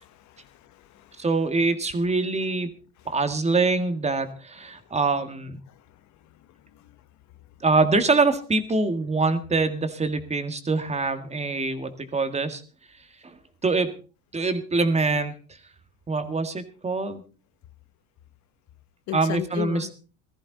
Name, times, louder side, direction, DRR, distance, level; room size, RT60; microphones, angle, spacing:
voice 1, 0.0-1.2 5.7-5.8 6.7-6.9 19.1-19.9, left 13 dB, 55° left, 1.1 m, -36 dB
voice 2, 1.2-2.7 3.1-5.6 7.6-12.6 13.2-13.9 14.3-15.3 16.1-17.2 19.1-19.9, right 3 dB, 20° right, 1.8 m, -24 dB
16.5 x 14.0 x 4.0 m
supercardioid pair, 110°, 34 cm